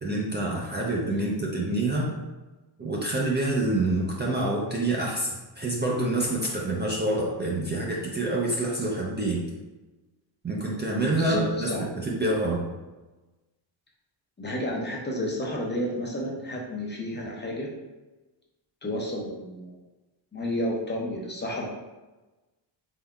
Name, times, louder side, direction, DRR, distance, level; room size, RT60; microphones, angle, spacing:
voice 1, 0.0-2.1 2.8-9.4 10.4-12.6, right 2 dB, 25° right, -3 dB, 0.4 m, -27 dB
voice 2, 11.1-11.8 14.4-17.7 18.8-19.7 20.3-21.7, left 1 dB, 25° left, -2 dB, 0.5 m, -31 dB
4.0 x 3.7 x 2.3 m, 1.1 s
wide cardioid pair, 150°, 47 cm